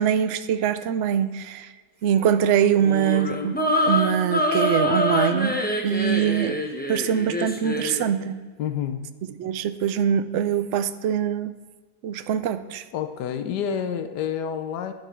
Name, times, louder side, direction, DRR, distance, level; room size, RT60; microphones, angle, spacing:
voice 1, 0.0-1.7 2.0-3.6 3.8-5.6 5.8-6.6 6.9-8.4 9.4-11.5 12.0-12.8, right 9 dB, 65° right, 12 dB, 0.7 m, -23 dB
sound 1, 2.8-8.0, left 1 dB, 10° left, 0.7 m, -25 dB
voice 2, 8.6-9.0 12.9-14.9, left 8 dB, 80° left, 8 dB, 1.3 m, -28 dB
11.5 x 9.3 x 4.4 m, 1.5 s
omnidirectional pair, 1.8 m